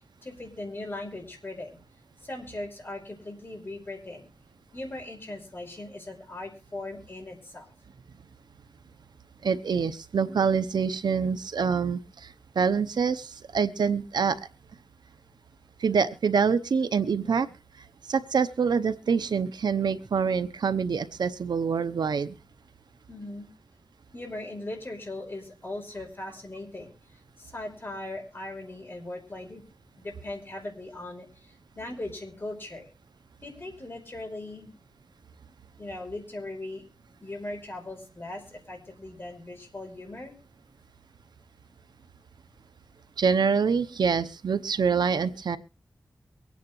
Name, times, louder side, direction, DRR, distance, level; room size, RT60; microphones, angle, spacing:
voice 1, 0.2-1.7 2.2-4.3 4.7-7.6 23.1-23.5 24.1-27.0 27.4-29.6 30.0-32.9 33.4-34.8 35.8-36.8 37.2-40.3, left 2 dB, 30° left, 2 dB, 5.1 m, -39 dB
voice 2, 9.4-14.5 15.8-17.5 18.1-22.4 43.2-45.6, right 6 dB, 85° right, 11 dB, 0.8 m, -26 dB
23.5 x 9.4 x 3.1 m, 0.31 s
wide cardioid pair, 110°, 7 cm